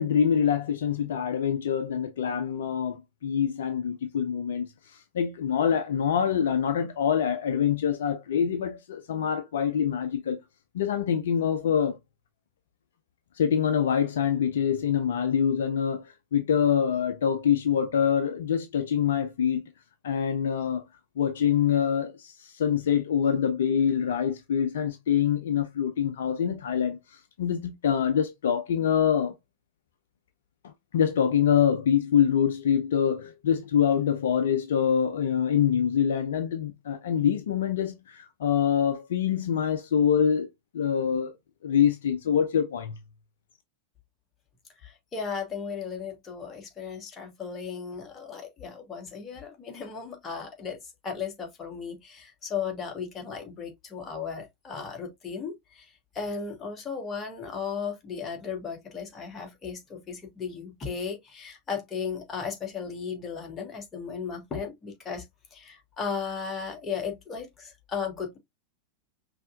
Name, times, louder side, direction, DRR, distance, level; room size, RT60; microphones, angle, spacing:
voice 1, 0.0-10.4 10.7-12.0 13.4-19.7 20.0-20.8 21.2-29.3 30.9-40.5 40.7-41.3 41.6-43.0, left 8 dB, 60° left, 0.5 m, -25 dB
voice 2, 44.8-50.8 51.0-55.5 56.1-65.2 65.5-68.4, left 6 dB, 20° left, 1.5 m, -35 dB
5.5 x 2.8 x 2.4 m
figure-of-eight pair, 90°, 0 cm